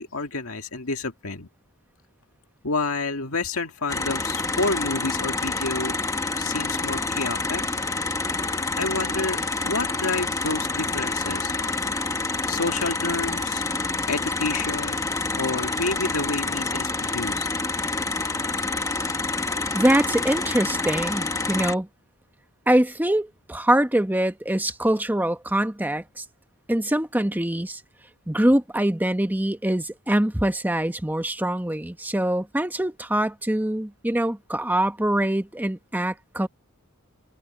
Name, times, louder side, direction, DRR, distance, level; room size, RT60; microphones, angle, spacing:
voice 1, 0.0-1.5 2.6-5.9 6.4-7.6 8.7-13.6 14.1-17.5, left 3 dB, 70° left, 2.2 m, -29 dB
sound 1, 3.9-21.7, left 3 dB, 15° left, 1.1 m, -27 dB
voice 2, 19.7-21.9 22.7-26.2 26.7-27.8 28.3-36.5, right 1 dB, 10° right, 1.0 m, -24 dB
head